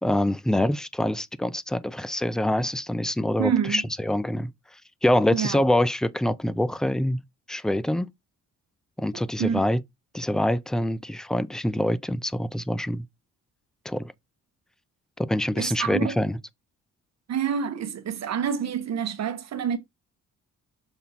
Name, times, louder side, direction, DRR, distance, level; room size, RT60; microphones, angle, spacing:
voice 1, 0.0-4.5 5.0-7.2 7.5-8.1 9.0-9.8 10.1-13.1 13.9-14.1 15.2-16.4, left 1 dB, ahead, 0.4 m, -25 dB
voice 2, 3.4-3.8 5.3-5.6 9.1-9.6 15.5-16.2 17.3-19.8, right 8 dB, 55° right, 1.2 m, -27 dB
7.0 x 4.0 x 4.3 m
cardioid pair, 140°, 31 cm